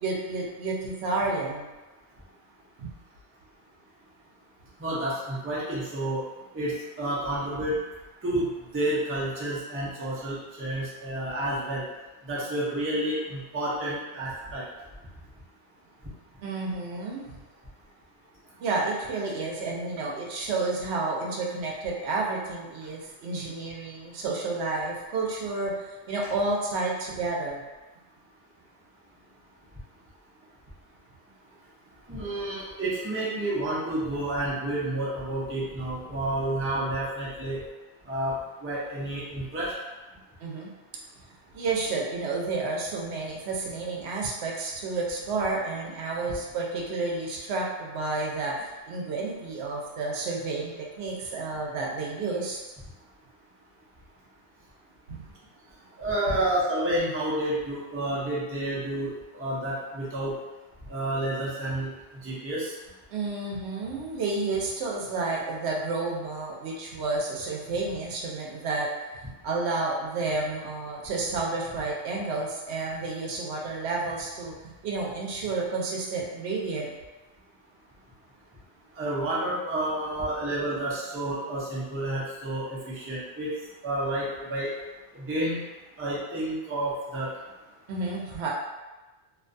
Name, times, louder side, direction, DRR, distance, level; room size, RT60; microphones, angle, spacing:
voice 1, 0.0-1.7 2.8-2.9 16.4-17.2 18.6-27.6 40.4-40.7 41.5-52.6 55.1-55.3 56.3-56.4 63.1-68.9 69.4-76.9 87.9-88.5, right 3 dB, 80° right, -2 dB, 0.8 m, -30 dB
voice 2, 4.8-11.9 12.2-14.7 16.0-16.4 17.8-17.9 18.5-18.6 31.4-31.7 32.0-37.6 38.0-39.8 40.1-40.2 41.1-41.2 53.0-53.1 54.6-54.7 55.2-55.3 55.7-60.4 60.8-62.8 78.9-84.8 85.1-85.6 86.0-87.5, right 1 dB, 20° right, -6 dB, 0.4 m, -30 dB
2.5 x 2.2 x 2.5 m, 1.1 s
omnidirectional pair, 1.1 m